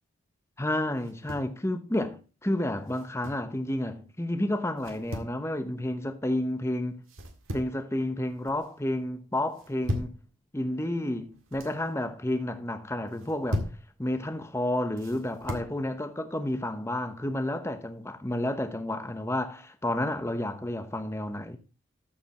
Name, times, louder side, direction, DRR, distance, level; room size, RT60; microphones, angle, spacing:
voice 1, 0.6-7.0 7.5-10.2 10.5-13.7 14.0-21.6, left 1 dB, 15° left, 0.8 m, -31 dB
sound 1, 1.0-1.6 2.9-3.5 4.8-5.4 7.1-7.8 8.2-8.7 9.5-10.2 11.2-11.8 13.1-13.8 15.0-15.7, equal, 75° right, 1.8 m, -36 dB
13.5 x 5.1 x 4.3 m
head